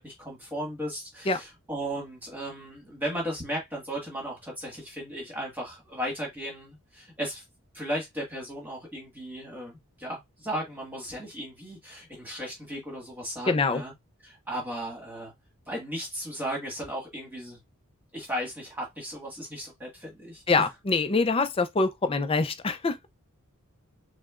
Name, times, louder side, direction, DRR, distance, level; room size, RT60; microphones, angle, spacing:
voice 1, 0.0-7.4 7.7-13.9 14.2-15.3 15.7-17.6 18.1-20.7, equal, 10° right, 1.6 m, -36 dB
voice 2, 13.5-13.8 20.5-23.1, left 3 dB, 25° left, 0.4 m, -25 dB
6.3 x 2.1 x 2.4 m
head